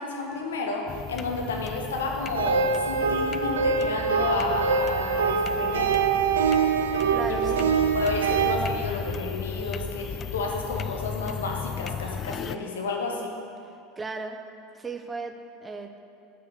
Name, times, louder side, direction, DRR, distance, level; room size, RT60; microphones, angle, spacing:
voice 1, 0.0-5.9 7.3-7.6 7.9-13.4, left 3 dB, 75° left, 1 dB, 1.2 m, -31 dB
sound 1, 0.9-12.6, left 7 dB, 35° left, 0.3 m, -36 dB
sound 2, 2.3-8.6, right 5 dB, 80° right, 0.5 m, -24 dB
voice 2, 7.1-7.7 14.0-14.4 14.7-16.0, right 4 dB, 20° right, 6 dB, 0.8 m, -36 dB
7.3 x 6.0 x 6.4 m, 2.6 s
figure-of-eight pair, 75°, 0 cm